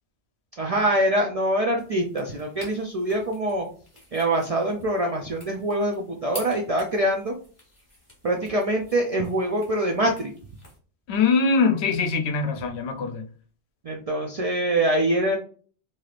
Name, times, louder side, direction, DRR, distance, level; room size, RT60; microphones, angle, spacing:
voice 1, 0.6-3.7 4.1-7.3 8.2-10.3 13.8-15.4, right 1 dB, 55° right, 0.4 m, -24 dB
sound 1, 1.8-10.8, left 1 dB, 20° left, 1.4 m, -48 dB
voice 2, 11.1-13.2, left 4 dB, 75° left, 0.8 m, -22 dB
3.2 x 2.8 x 2.4 m
omnidirectional pair, 1.1 m